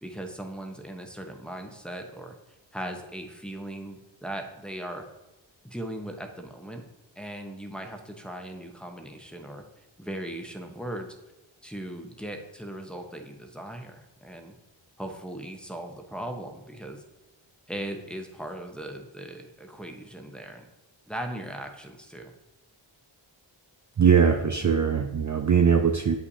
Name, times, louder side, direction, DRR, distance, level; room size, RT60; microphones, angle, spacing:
voice 1, 0.0-2.3 2.7-5.0 5.6-6.8 7.2-11.1 11.6-14.5 15.0-17.0 17.7-20.6 21.1-22.3, right 1 dB, ahead, 2 dB, 0.9 m, -38 dB
voice 2, 24.0-26.2, right 6 dB, 40° right, 5 dB, 0.4 m, -21 dB
8.2 x 5.5 x 2.7 m, 1.0 s
wide cardioid pair, 40°, 50 cm